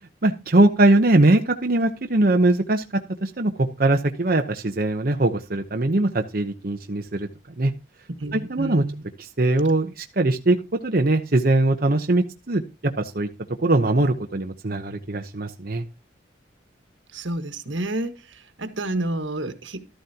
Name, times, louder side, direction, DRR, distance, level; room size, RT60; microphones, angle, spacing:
voice 1, 0.2-2.8 3.2-7.3 7.6-7.7 8.3-8.8 9.2-10.6 10.8-12.6 13.0-13.3 13.6-15.8, right 2 dB, 50° right, 0.9 m, -21 dB
voice 2, 8.2-9.0 17.1-19.9, right 1 dB, 85° right, 1.5 m, -30 dB
13.0 x 11.5 x 2.9 m
head